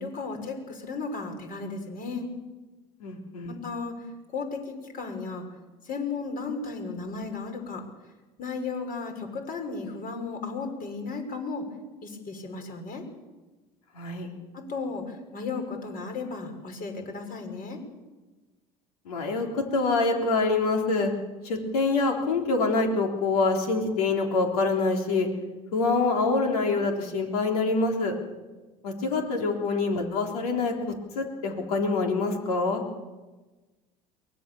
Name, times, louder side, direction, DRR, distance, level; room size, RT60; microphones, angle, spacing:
voice 1, 0.0-2.3 3.4-4.1 4.3-5.5 5.8-7.9 8.4-11.7 12.0-13.0 14.5-17.8, left 4 dB, 50° left, 4 dB, 6.1 m, -34 dB
voice 2, 3.0-3.5 13.9-14.3 19.1-21.1 21.4-25.3 25.7-28.1 28.8-30.7 31.2-32.8, left 3 dB, 85° left, 2 dB, 3.9 m, -25 dB
23.5 x 19.0 x 7.2 m, 1.2 s
hypercardioid pair, 75°, 19 cm